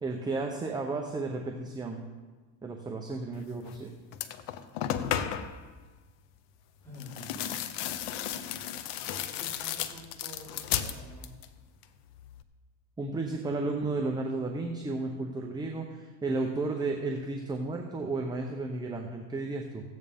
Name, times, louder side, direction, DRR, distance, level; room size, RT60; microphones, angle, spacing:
voice 1, 0.0-2.0 2.6-3.9 13.0-19.8, right 3 dB, 10° right, 2 dB, 0.6 m, -33 dB
sound 1, 3.7-3.8 4.1-5.6 6.9-11.5 11.8-12.4, left 10 dB, 80° left, 0.8 m, -34 dB
voice 2, 6.8-7.9 9.1-11.3, equal, 5° left, -7 dB, 4.0 m, -48 dB
15.0 x 9.1 x 3.5 m, 1.3 s
cardioid pair, 145°, 38 cm